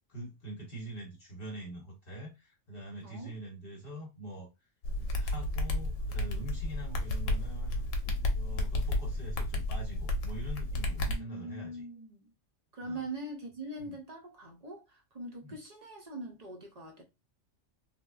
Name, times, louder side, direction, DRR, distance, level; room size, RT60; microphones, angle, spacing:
voice 1, 0.1-4.5 5.0-7.8 8.3-11.8 12.8-13.0 13.8-14.0 15.4-15.6, equal, 50° left, 1.0 m, -44 dB
sound 1, 4.8-11.2, left 1 dB, 85° left, 1.0 m, -32 dB
voice 2, 11.1-12.3 12.7-17.0, right 1 dB, 45° right, 0.5 m, -42 dB
3.2 x 2.1 x 2.2 m
omnidirectional pair, 1.3 m